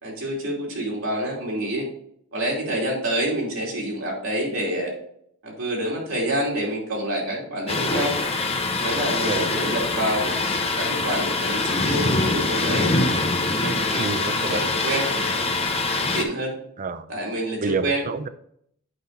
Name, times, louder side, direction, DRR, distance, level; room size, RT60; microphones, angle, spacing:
voice 1, 0.0-1.9 2.3-4.9 5.4-8.2 8.8-10.3 10.8-12.9 13.4-15.5 16.0-16.5 17.1-18.0, right 1 dB, 75° right, -2 dB, 2.8 m, -27 dB
Thunder, 7.7-16.2, left 3 dB, 30° left, 0.9 m, -24 dB
voice 2, 14.0-14.7 16.8-17.1 17.6-18.3, right 4 dB, 40° right, 12 dB, 0.5 m, -28 dB
8.0 x 5.4 x 3.9 m, 0.70 s
head